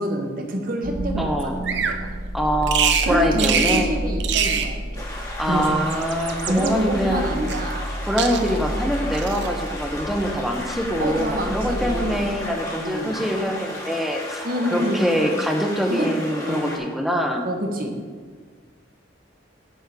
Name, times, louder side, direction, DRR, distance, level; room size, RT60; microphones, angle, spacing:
voice 1, 0.0-2.1 3.0-5.1 5.4-5.8 6.5-7.9 11.0-12.3 12.8-13.2 14.4-15.0 15.9-16.1 16.4-16.7 17.4-17.9, right 1 dB, 45° right, 3 dB, 1.0 m, -27 dB
sound 1, 0.8-12.9, equal, 25° right, 1.3 m, -31 dB
voice 2, 1.2-1.5 2.3-3.9 5.4-7.3 8.1-14.4 14.7-17.5, equal, ahead, 2 dB, 0.7 m, -24 dB
Bird vocalization bird call bird song, 1.6-2.0 2.7-3.1 3.4-3.9 4.2-4.7 5.7-6.7 7.5-7.9 8.2-8.7 9.1-9.5, right 7 dB, 60° right, 0.6 m, -24 dB
sound 2, 4.9-16.8, left 1 dB, 15° left, 1.2 m, -35 dB
9.0 x 3.6 x 6.6 m, 1.5 s
head